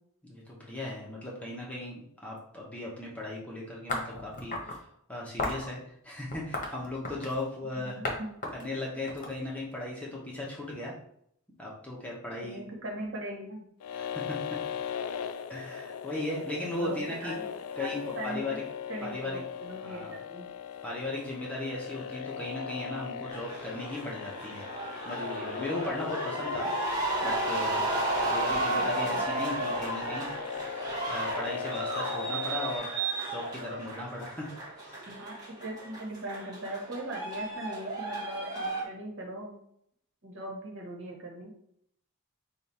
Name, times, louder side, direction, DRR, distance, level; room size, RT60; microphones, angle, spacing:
voice 1, 0.3-4.8 5.1-5.8 6.0-8.0 8.5-10.9 11.6-12.6 13.9-14.4 15.5-17.3 17.8-18.0 18.2-18.6 19.0-19.4 19.8-20.1 20.8-24.7 25.0-26.7 27.2-27.9 28.2-30.3 30.6-34.4 34.8-35.1, left 1 dB, 5° left, -4 dB, 0.9 m, -37 dB
sound 1, 3.9-4.8 5.4-5.7 6.3-7.4 8.0-8.2 8.4-9.8, left 2 dB, 35° left, 1.0 m, -34 dB
voice 2, 7.8-8.3 12.4-13.6 16.6-17.4 17.8-18.6 18.9-20.5 28.8-29.2 35.0-35.3 35.6-39.6 40.2-41.5, right 1 dB, 60° right, -1 dB, 1.4 m, -40 dB
sound 2, 13.8-32.8, left 7 dB, 70° left, 0.3 m, -38 dB
sound 3, 23.3-38.8, right 2 dB, 20° right, 1.2 m, -34 dB
5.1 x 2.4 x 4.2 m, 0.71 s
head